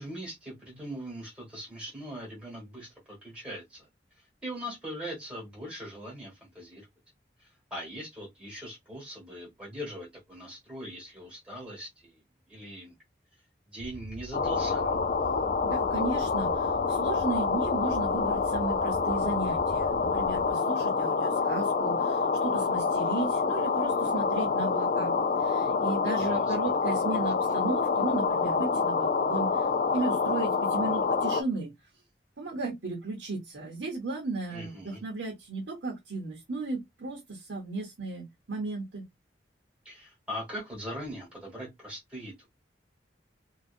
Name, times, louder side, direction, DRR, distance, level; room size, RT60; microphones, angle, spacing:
voice 1, 0.0-3.9 4.2-6.9 7.4-12.2 12.5-12.9 13.7-14.9 26.2-26.5 34.5-35.0 39.8-42.5, equal, 5° right, 1.3 m, -41 dB
sound 1, 13.8-20.5, equal, 45° right, 0.9 m, -43 dB
sound 2, 14.3-31.4, left 4 dB, 45° left, 0.3 m, -27 dB
voice 2, 15.6-31.7 32.4-39.0, right 3 dB, 80° right, 0.8 m, -35 dB
2.6 x 2.3 x 2.4 m
head